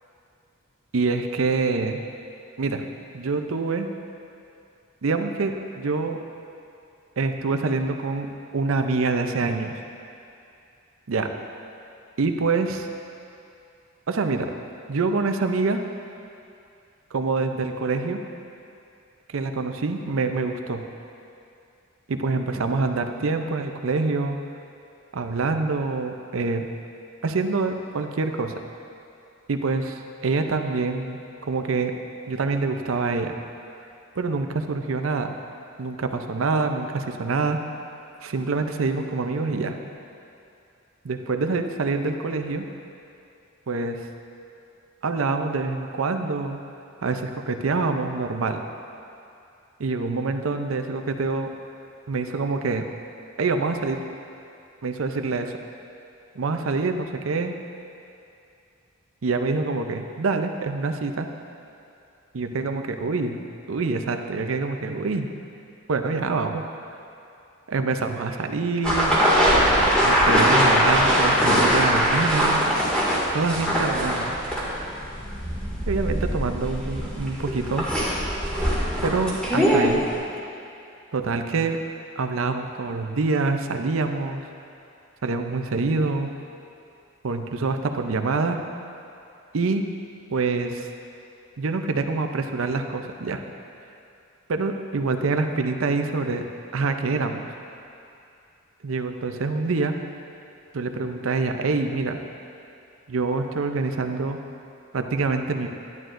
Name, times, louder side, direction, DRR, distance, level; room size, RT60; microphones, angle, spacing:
voice 1, 0.9-2.0 2.6-2.9 3.1-3.9 5.0-6.2 7.2-9.8 11.1-11.3 12.2-12.9 14.1-14.5 14.9-15.8 17.1-18.2 19.3-20.9 22.1-24.4 25.1-26.7 27.2-28.6 29.5-31.2 31.5-32.0 32.3-33.4 34.2-35.3 35.8-37.6 38.2-39.8 41.0-42.7 43.7-44.1 45.0-46.6 47.0-48.6 49.8-51.5 52.1-52.9 53.4-54.0 54.8-55.6 56.4-57.5 59.2-61.3 62.3-63.4 63.7-65.3 65.9-66.6 67.7-69.2 70.0-72.6 73.3-74.4 75.9-77.9 79.0-80.0 81.1-81.8 82.2-84.4 85.2-86.3 87.2-88.6 89.5-89.9 90.3-90.9 91.6-93.4 94.5-96.4 96.7-97.5 98.8-99.9 100.7-102.2 103.1-104.4 104.9-105.7, right 3 dB, 80° right, 6 dB, 0.6 m, -26 dB
sound 1, 68.8-80.1, equal, 5° left, 2.0 m, -22 dB
11.0 x 11.0 x 2.6 m, 2.6 s
head